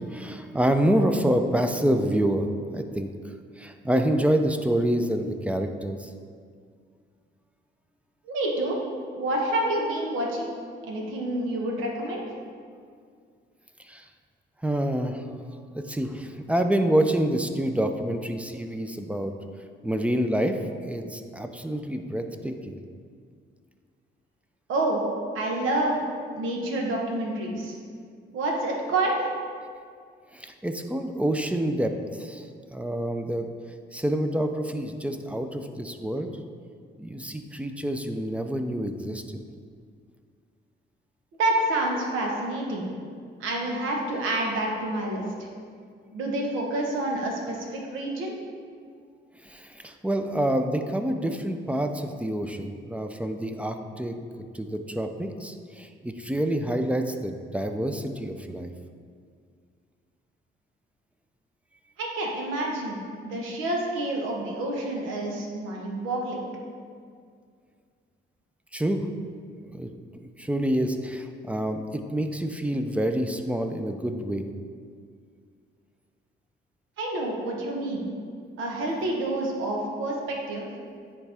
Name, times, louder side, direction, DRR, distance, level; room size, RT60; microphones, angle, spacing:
voice 1, 0.0-2.5 2.7-6.1 13.8-14.1 14.6-15.3 15.7-19.3 19.8-22.8 30.3-33.5 33.9-36.3 37.0-39.4 49.4-54.2 54.5-58.7 68.7-69.1 69.6-69.9 70.4-74.5, right 1 dB, 5° right, 6 dB, 0.4 m, -27 dB
voice 2, 8.2-8.8 9.2-10.5 10.9-12.2 24.7-25.0 25.3-26.0 26.3-27.7 28.3-29.3 41.4-42.9 43.4-45.2 46.1-48.3 62.0-66.5 77.0-78.1 78.6-80.7, right 1 dB, 85° right, -1 dB, 1.2 m, -28 dB
9.7 x 3.5 x 3.4 m, 2.1 s
cardioid pair, 90°, 20 cm